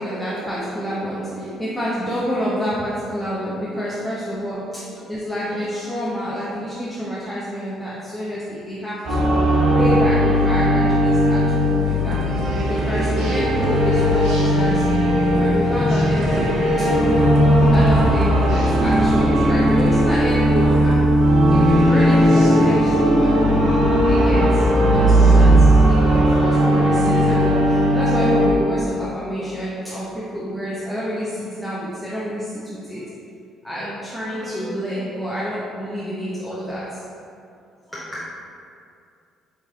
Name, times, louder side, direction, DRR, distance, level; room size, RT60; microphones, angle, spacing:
voice 1, 0.0-16.9 17.7-23.4 24.0-33.0 33.6-37.0 37.9-38.2, equal, ahead, -9 dB, 0.8 m, -29 dB
sound 1, 9.0-28.5, equal, 75° right, 1.0 m, -16 dB
sound 2, 11.5-11.6 11.8-12.4 12.7-13.0 13.3-21.2 21.5-21.8, right 1 dB, 60° right, 0.7 m, -32 dB
5.4 x 3.2 x 2.4 m, 2.4 s
supercardioid pair, 65°, 0 cm